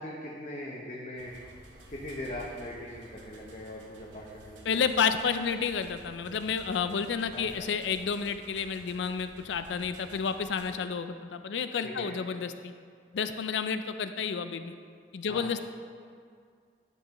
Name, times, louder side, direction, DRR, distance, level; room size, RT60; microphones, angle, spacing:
voice 1, 0.0-1.4 1.9-4.8 7.3-7.7 11.8-12.1 15.3-15.5, left 1 dB, 40° left, -4 dB, 0.7 m, -40 dB
sound 1, 1.2-10.7, right 1 dB, 90° right, 0.9 m, -53 dB
voice 2, 4.7-12.7 13.1-14.7 15.1-15.6, left 6 dB, 85° left, 10 dB, 0.4 m, -30 dB
11.0 x 5.4 x 3.0 m, 2.1 s
head